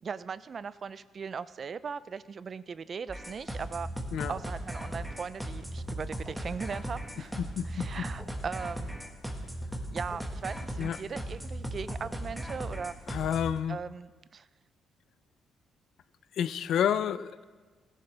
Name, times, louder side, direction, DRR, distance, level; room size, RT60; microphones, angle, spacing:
voice 1, 0.0-3.9 4.3-7.3 7.6-9.0 9.9-12.9 13.7-14.5, right 6 dB, 45° right, 16 dB, 0.4 m, -39 dB
sound 1, 3.1-13.6, right 1 dB, 5° right, 1.6 m, -37 dB
voice 2, 7.4-8.1 10.8-11.0 13.1-13.8 16.4-17.4, left 9 dB, 70° left, 15 dB, 0.4 m, -30 dB
16.5 x 11.0 x 3.4 m, 1.4 s
cardioid pair, 90°, 0 cm